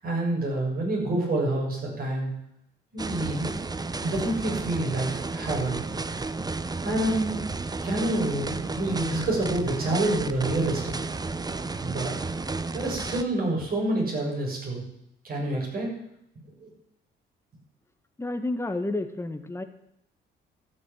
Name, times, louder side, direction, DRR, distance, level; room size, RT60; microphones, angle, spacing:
voice 1, 0.0-2.3 2.9-3.7 4.0-5.8 6.8-7.4 7.8-11.0 11.2-11.3 11.8-12.2 12.7-14.8 15.2-15.9 16.6-16.7, right 1 dB, 50° right, -2 dB, 7.0 m, -27 dB
sound 1, 3.0-13.2, right 3 dB, 20° right, 0.8 m, -32 dB
voice 2, 18.2-19.6, left 2 dB, 15° left, 8 dB, 1.5 m, -30 dB
12.5 x 7.0 x 9.0 m, 0.78 s
cardioid pair, 90°, 20 cm